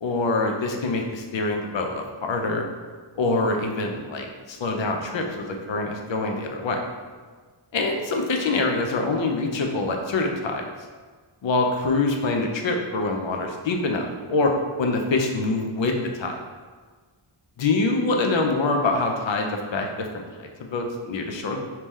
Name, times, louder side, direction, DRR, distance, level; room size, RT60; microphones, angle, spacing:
voice 1, 0.0-2.6 3.2-6.8 7.7-10.6 11.4-14.5 14.8-16.4 17.6-21.6, left 3 dB, 65° left, 2 dB, 0.6 m, -25 dB
3.6 x 2.9 x 3.1 m, 1.5 s
wide cardioid pair, 85°, 49 cm